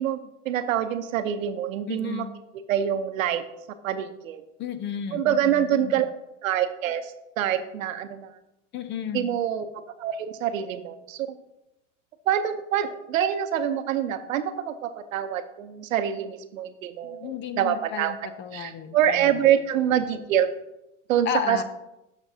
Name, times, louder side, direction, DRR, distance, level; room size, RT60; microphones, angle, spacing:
voice 1, 0.0-2.3 2.7-3.4 3.8-4.4 5.1-6.1 6.4-8.3 9.1-9.7 10.0-11.3 12.3-18.1 18.5-20.5 21.1-21.6, right 10 dB, 85° right, 9 dB, 0.9 m, -26 dB
voice 2, 1.9-2.3 4.6-6.0 8.7-9.4 17.0-19.5 21.3-21.6, left 8 dB, 30° left, 12 dB, 0.6 m, -33 dB
12.5 x 6.1 x 2.8 m, 0.90 s
supercardioid pair, 115°, 39 cm